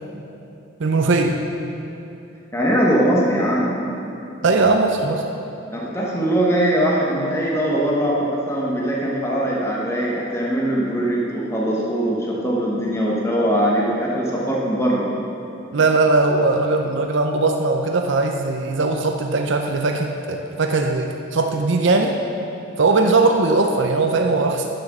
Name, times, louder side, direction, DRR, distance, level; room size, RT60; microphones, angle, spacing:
voice 1, 0.8-1.4 4.4-5.3 15.7-22.2 22.8-24.7, right 3 dB, 60° right, 3 dB, 0.6 m, -19 dB
voice 2, 2.5-3.8 5.7-15.1, right 1 dB, 15° left, -4 dB, 1.1 m, -21 dB
10.5 x 7.4 x 6.1 m, 2.8 s
head